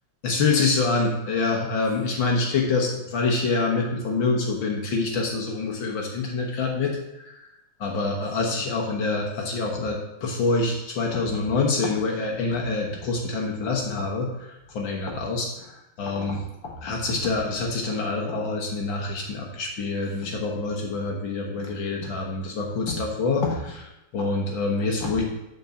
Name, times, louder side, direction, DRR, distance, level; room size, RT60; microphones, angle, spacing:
voice 1, 0.2-7.5 7.8-15.7 16.0-25.2, left 3 dB, 80° left, 0 dB, 2.0 m, -26 dB
10.0 x 4.2 x 7.0 m, 0.92 s
omnidirectional pair, 2.1 m